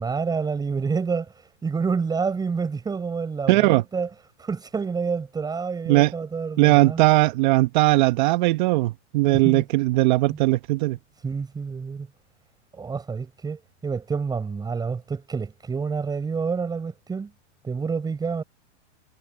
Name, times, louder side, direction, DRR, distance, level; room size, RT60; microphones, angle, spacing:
voice 1, 0.0-4.1 4.4-7.0 9.3-9.6 10.3-10.4 11.2-12.1 12.7-17.3 17.6-18.4, right 5 dB, 10° right, 5.8 m, -28 dB
voice 2, 3.5-3.8 5.9-6.1 6.6-11.0, right 20 dB, 40° right, 0.9 m, -19 dB
hypercardioid pair, 150°, 36 cm